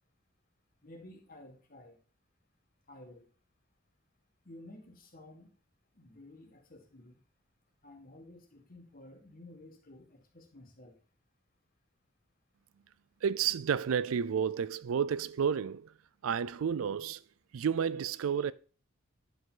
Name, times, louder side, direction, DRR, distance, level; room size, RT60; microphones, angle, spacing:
voice 1, 0.8-2.0 2.9-3.3 4.4-5.5 5.9-7.2 7.8-10.9, left 1 dB, 45° left, 1.7 m, -53 dB
voice 2, 13.2-15.9 16.2-17.2 17.5-18.5, right 7 dB, 90° right, 0.4 m, -31 dB
10.5 x 5.0 x 3.8 m
head